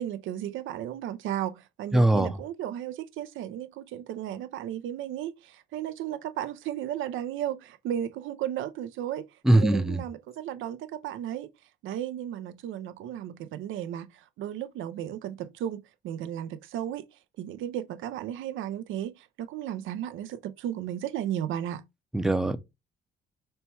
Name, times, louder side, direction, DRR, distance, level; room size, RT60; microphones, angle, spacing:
voice 1, 0.0-9.3 9.5-11.5 11.8-17.1 17.4-21.8, right 11 dB, 80° right, 0.5 m, -34 dB
voice 2, 1.9-2.3 9.4-10.0 22.1-22.6, right 1 dB, ahead, 0.5 m, -21 dB
4.3 x 2.2 x 4.3 m
cardioid pair, 90°, 20 cm